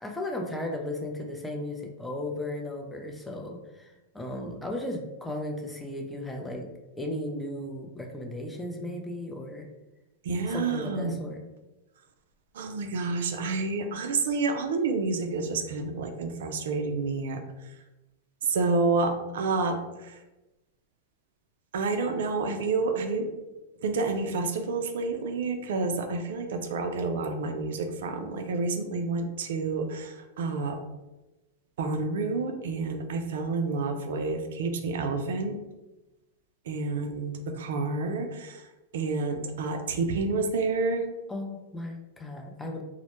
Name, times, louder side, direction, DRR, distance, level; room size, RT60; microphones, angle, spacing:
voice 1, 0.0-6.7 7.0-9.7 10.5-11.4 41.3-42.8, left 1 dB, 10° left, 1 dB, 0.5 m, -35 dB
voice 2, 10.2-11.2 12.5-17.4 18.5-20.2 21.7-23.3 23.8-30.8 31.8-35.5 36.7-38.6 38.9-41.0, right 3 dB, 70° right, 5 dB, 0.3 m, -29 dB
2.1 x 2.1 x 2.9 m, 1.0 s
hypercardioid pair, 105°, 0 cm